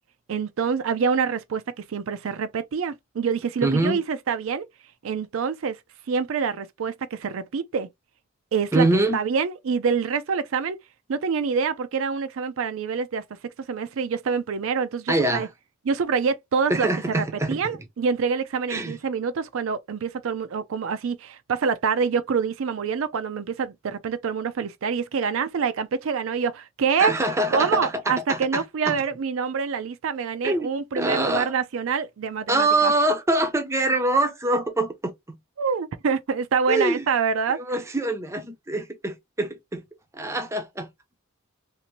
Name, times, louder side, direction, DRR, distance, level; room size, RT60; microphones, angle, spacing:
voice 1, 0.3-4.6 5.0-5.8 6.1-7.9 8.5-8.9 9.1-10.8 11.1-13.2 13.7-15.5 15.9-27.1 27.5-32.9 35.6-37.6, right 6 dB, 75° right, 0.4 m, -26 dB
voice 2, 3.6-4.0 8.7-9.2 15.1-15.5 16.7-17.8 18.7-19.0 27.0-29.0 30.4-30.7 31.0-31.5 32.5-35.4 36.7-37.1 37.6-39.8 40.1-40.9, right 2 dB, 15° right, 0.5 m, -24 dB
2.7 x 2.5 x 2.9 m
head